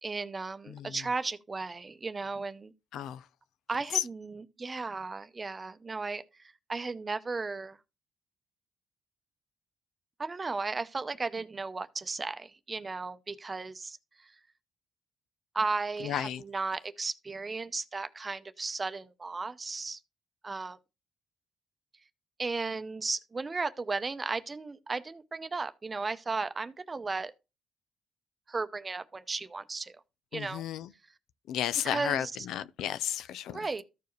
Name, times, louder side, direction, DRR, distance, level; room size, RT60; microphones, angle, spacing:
voice 1, 0.0-2.7 3.7-6.2 6.7-7.8 10.2-14.0 15.5-20.0 20.4-20.8 22.4-27.3 28.5-29.9 30.3-30.6 31.8-32.3 33.5-33.8, right 3 dB, 30° right, 0.6 m, -35 dB
voice 2, 2.9-3.2 3.9-4.0 16.0-16.4 30.3-30.9 31.5-33.6, left 10 dB, 85° left, 0.4 m, -33 dB
14.0 x 4.7 x 3.1 m
cardioid pair, 90°, 0 cm